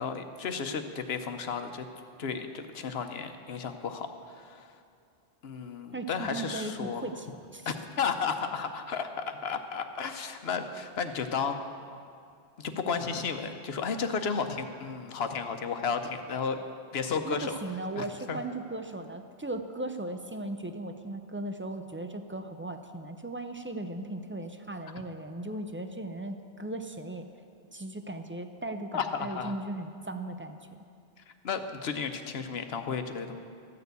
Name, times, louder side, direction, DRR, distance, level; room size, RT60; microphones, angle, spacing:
voice 1, 0.0-1.9 2.2-4.7 5.4-7.0 7.7-11.6 12.6-16.6 16.9-17.6 18.0-18.4 28.9-29.5 31.4-33.4, left 5 dB, 70° left, 7 dB, 1.0 m, -33 dB
voice 2, 5.9-7.3 7.5-7.7 17.2-27.2 27.7-30.6, right 2 dB, 20° right, 7 dB, 0.3 m, -37 dB
14.0 x 6.8 x 8.2 m, 2.4 s
omnidirectional pair, 1.1 m